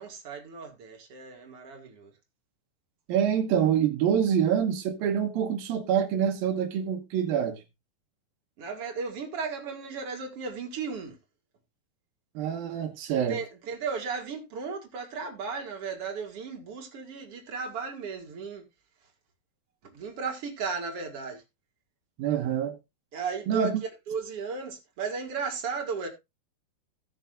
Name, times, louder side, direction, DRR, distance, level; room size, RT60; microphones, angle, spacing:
voice 1, 0.0-2.1 8.6-11.2 13.1-18.7 19.8-21.4 23.1-26.1, right 5 dB, 45° right, 2.9 m, -35 dB
voice 2, 3.1-7.6 12.4-13.4 22.2-22.8 23.5-23.8, right 8 dB, 75° right, 3.0 m, -26 dB
17.5 x 6.5 x 2.5 m
omnidirectional pair, 4.3 m